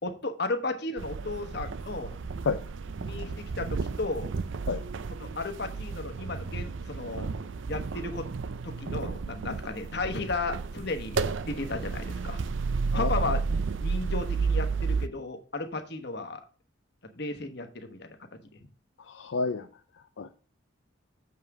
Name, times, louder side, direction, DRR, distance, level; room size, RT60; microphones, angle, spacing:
voice 1, 0.0-2.2 3.0-4.3 5.2-7.3 7.7-8.3 8.6-12.4 12.9-13.4 13.8-16.4 17.2-18.2, left 3 dB, 55° left, 6 dB, 1.2 m, -34 dB
sound 1, 1.0-15.1, right 4 dB, 65° right, 0.5 m, -32 dB
voice 2, 19.0-19.7 19.9-20.4, left 4 dB, 70° left, 7 dB, 0.5 m, -31 dB
7.4 x 5.6 x 4.7 m, 0.39 s
head